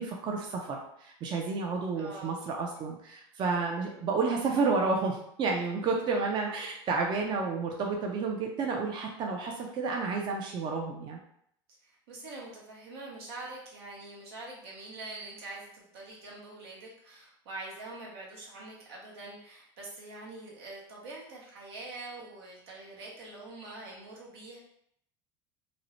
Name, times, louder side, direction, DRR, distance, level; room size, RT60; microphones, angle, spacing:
voice 1, 0.0-11.2, right 4 dB, 35° right, 0 dB, 0.5 m, -31 dB
voice 2, 2.0-2.3 7.2-7.4 11.8-24.6, right 2 dB, 85° right, -3 dB, 0.9 m, -44 dB
2.6 x 2.0 x 2.9 m, 0.71 s
supercardioid pair, 110°, 13 cm